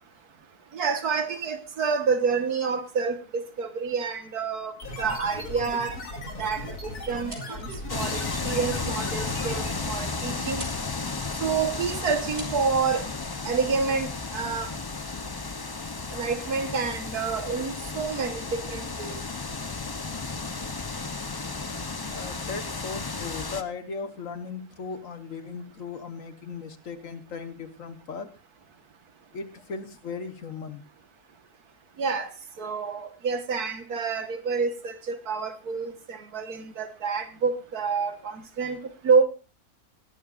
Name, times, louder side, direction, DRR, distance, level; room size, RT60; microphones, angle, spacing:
voice 1, 0.7-6.0 6.4-10.6 11.4-13.1 13.4-14.7 16.1-19.2 32.0-32.3 32.6-38.8 39.0-39.2, right 5 dB, 80° right, 8 dB, 1.9 m, -28 dB
sound 1, 4.8-10.0, left 1 dB, 85° left, 3.2 m, -37 dB
sound 2, 7.3-7.9 8.4-8.5 9.1-9.2 9.5-9.6 9.8-10.2 10.5-11.0 11.9-12.0 12.4-12.6, right 1 dB, 40° right, 3.3 m, -43 dB
sound 3, 7.9-23.6, left 3 dB, 35° left, 0.4 m, -33 dB
voice 2, 22.1-28.3 29.3-30.8, left 5 dB, 60° left, 10 dB, 1.6 m, -37 dB
19.0 x 12.0 x 2.5 m, 0.33 s
omnidirectional pair, 1.6 m